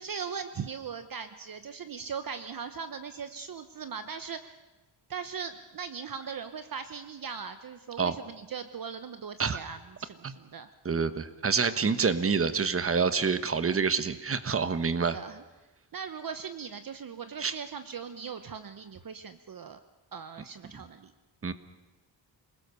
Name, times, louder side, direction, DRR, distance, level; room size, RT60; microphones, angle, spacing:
voice 1, 0.0-4.6 5.1-10.7 15.0-15.4 15.9-19.8 20.1-21.1, right 6 dB, 50° right, 10 dB, 1.0 m, -39 dB
voice 2, 10.8-15.2 17.4-17.5 21.4-21.5, right 5 dB, 30° right, 12 dB, 1.2 m, -27 dB
28.0 x 20.0 x 6.9 m, 1.1 s
wide cardioid pair, 150°, 45 cm